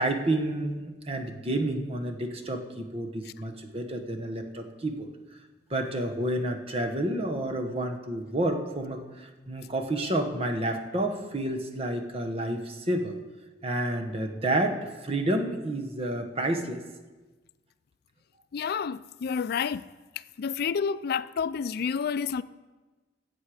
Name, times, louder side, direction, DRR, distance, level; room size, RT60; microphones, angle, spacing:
voice 1, 0.0-5.1 5.7-13.1 13.6-16.8, right 1 dB, 35° right, 1.1 m, -30 dB
voice 2, 18.5-19.8 20.4-22.4, left 6 dB, 55° left, 0.4 m, -29 dB
16.5 x 7.4 x 4.9 m
head